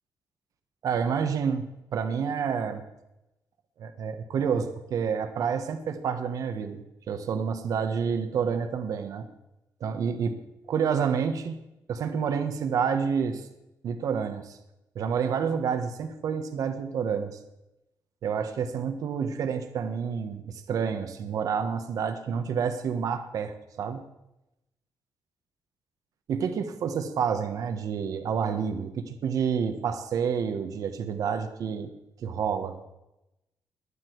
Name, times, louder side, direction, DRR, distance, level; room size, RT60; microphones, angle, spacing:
voice 1, 0.8-1.7 1.9-2.8 3.8-6.8 7.1-9.3 9.8-10.4 10.7-11.6 11.9-13.5 13.8-14.6 14.9-17.4 18.2-24.0 26.3-31.9 32.2-32.8, right 6 dB, 65° right, 8 dB, 1.4 m, -29 dB
18.0 x 11.5 x 4.7 m, 0.92 s
cardioid pair, 130°, 6 cm